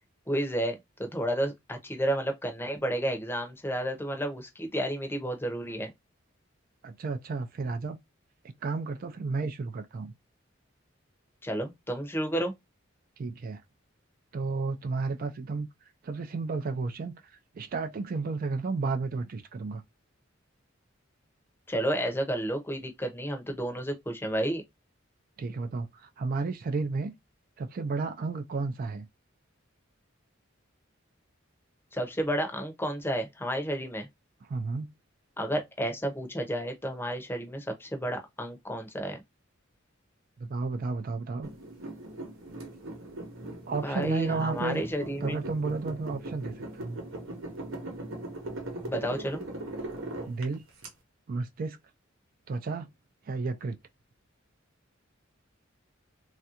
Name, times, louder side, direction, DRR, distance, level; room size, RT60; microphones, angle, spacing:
voice 1, 0.3-0.7 1.0-5.9 11.4-12.5 21.7-24.6 31.9-34.1 35.4-39.2 43.8-45.4 48.9-49.4, right 1 dB, 10° left, 0.7 m, -31 dB
voice 2, 6.8-8.0 8.4-10.1 13.2-13.6 14.3-15.7 16.0-19.8 25.4-27.1 27.6-29.1 34.5-34.9 40.4-41.5 43.7-44.8 45.2-47.0 50.3-50.6 51.3-51.8 52.5-52.9 53.3-53.8, right 4 dB, 45° right, 0.3 m, -32 dB
sound 1, 41.4-50.9, right 1 dB, 80° right, 0.9 m, -39 dB
3.2 x 2.4 x 2.8 m
head